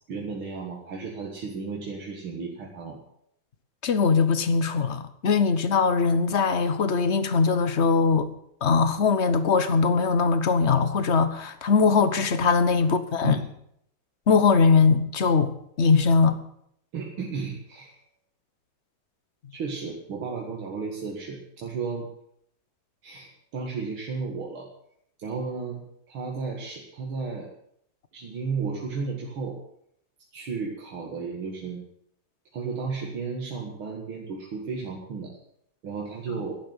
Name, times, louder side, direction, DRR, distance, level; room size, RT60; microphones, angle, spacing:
voice 1, 0.1-3.0 12.8-12.9 13.2-13.5 16.9-18.0 19.5-22.1 23.0-24.7 25.2-27.5 28.1-29.6 30.3-31.8 32.5-35.3 35.8-36.6, right 4 dB, 85° right, -1 dB, 2.8 m, -33 dB
voice 2, 3.8-8.3 8.6-13.4 14.3-15.5 15.8-16.3 36.3-36.4, left 5 dB, 45° left, 11 dB, 1.0 m, -21 dB
11.5 x 10.5 x 8.1 m, 0.72 s
omnidirectional pair, 2.2 m